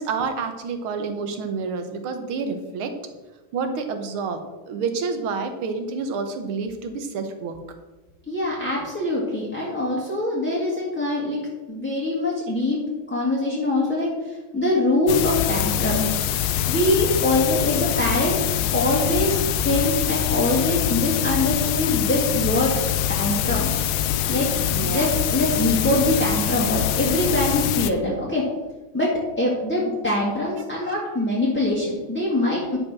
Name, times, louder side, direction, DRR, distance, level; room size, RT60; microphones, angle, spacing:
voice 1, 0.0-3.0 3.5-7.6 24.7-25.1 30.8-31.1, right 4 dB, 75° right, 7 dB, 1.9 m, -29 dB
voice 2, 8.3-11.4 11.7-12.8 13.1-16.1 16.7-22.8 23.1-23.8 24.3-24.5 24.9-28.4 28.9-32.8, left 1 dB, 5° left, -5 dB, 1.5 m, -23 dB
sound 1, 15.1-27.9, left 11 dB, 70° left, 1.1 m, -24 dB
10.5 x 5.4 x 6.0 m, 1.2 s
omnidirectional pair, 2.4 m